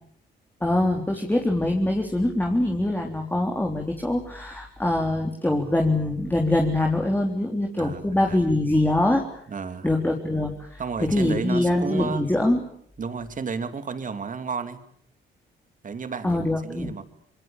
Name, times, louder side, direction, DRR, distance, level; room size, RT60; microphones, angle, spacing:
voice 1, 0.6-9.2 9.8-12.6 16.2-16.9, left 1 dB, 10° left, 2 dB, 3.6 m, -23 dB
voice 2, 7.8-8.6 9.5-9.9 10.8-12.3 13.0-14.8 15.8-17.0, right 5 dB, 40° right, 10 dB, 2.8 m, -32 dB
27.0 x 22.5 x 8.8 m, 0.68 s
cardioid pair, 90°, 20 cm